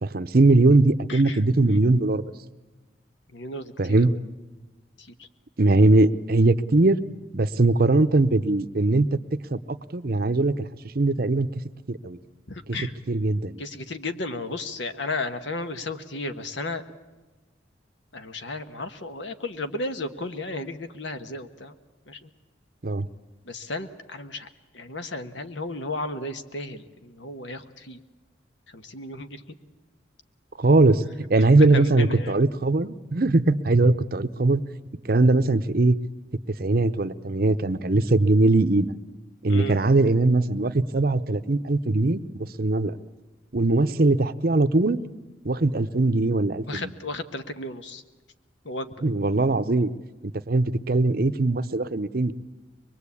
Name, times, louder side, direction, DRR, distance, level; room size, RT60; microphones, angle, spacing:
voice 1, 0.0-2.2 3.8-4.1 5.6-7.0 7.3-9.2 9.5-10.6 10.9-11.5 11.9-12.2 13.1-13.6 22.8-23.1 30.6-31.0 31.3-34.6 35.1-35.9 36.6-38.9 39.4-43.0 43.5-45.0 45.4-46.9 49.0-49.9 50.5-52.3, right 2 dB, 50° right, 12 dB, 0.7 m, -20 dB
voice 2, 3.3-4.2 5.0-5.3 12.5-12.9 13.6-16.8 18.1-21.7 22.1-22.3 23.4-24.5 24.7-28.0 28.7-29.4 31.7-32.4 39.5-39.8 46.7-48.0 48.6-48.9, left 2 dB, 70° left, 9 dB, 1.4 m, -34 dB
23.5 x 21.5 x 8.5 m, 1.2 s
head